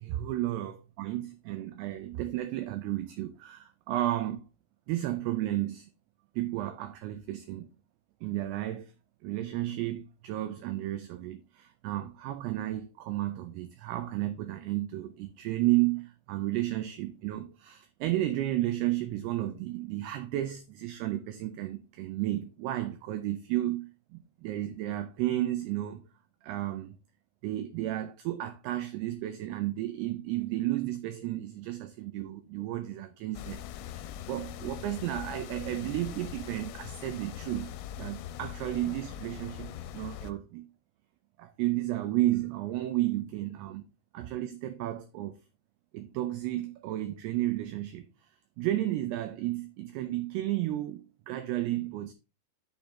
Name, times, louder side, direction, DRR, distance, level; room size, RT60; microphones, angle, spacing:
voice 1, 0.0-4.4 4.9-5.9 6.4-7.7 8.2-8.9 9.2-26.0 26.4-27.0 27.4-37.7 38.0-40.7 41.4-43.8 44.1-45.4 45.9-48.1 48.6-52.1, right 15 dB, 85° right, 2.3 m, -32 dB
sound 1, 33.3-40.3, left 10 dB, 90° left, 3.0 m, -42 dB
11.0 x 4.4 x 3.6 m
omnidirectional pair, 5.4 m